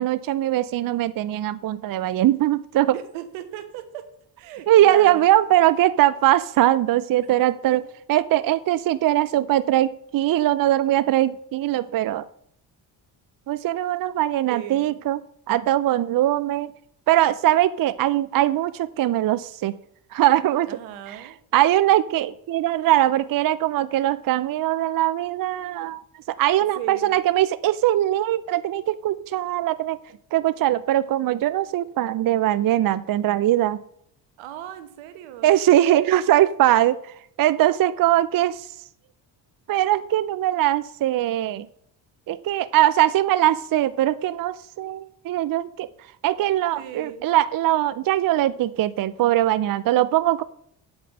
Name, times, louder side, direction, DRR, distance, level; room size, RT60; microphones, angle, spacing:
voice 1, 0.0-2.9 4.7-7.8 8.1-12.2 13.5-15.2 15.5-16.7 17.1-19.7 20.1-20.7 21.5-26.0 26.4-30.0 30.3-33.8 35.4-37.1 37.4-38.7 39.7-41.7 42.3-45.9 46.2-50.4, right 13 dB, 50° right, 15 dB, 0.5 m, -21 dB
voice 2, 2.9-4.1 4.4-5.2 7.2-7.8 14.5-14.9 20.7-21.4 26.6-27.2 34.4-35.6 46.7-47.3, right 11 dB, 90° right, 9 dB, 1.2 m, -37 dB
8.0 x 5.1 x 7.6 m, 0.67 s
supercardioid pair, 65°, 46 cm